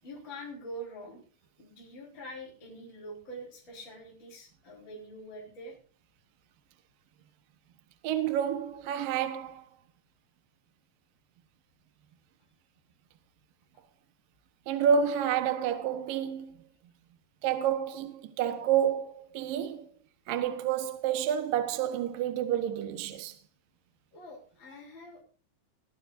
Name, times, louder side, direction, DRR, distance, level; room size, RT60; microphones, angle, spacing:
voice 1, 0.0-1.2 1.6-5.8 24.1-25.2, equal, 25° left, 5.3 m, -45 dB
voice 2, 8.0-9.6 14.7-16.6 17.4-19.9 20.3-23.4, right 8 dB, 65° right, 2.4 m, -29 dB
21.5 x 12.5 x 2.7 m
omnidirectional pair, 5.3 m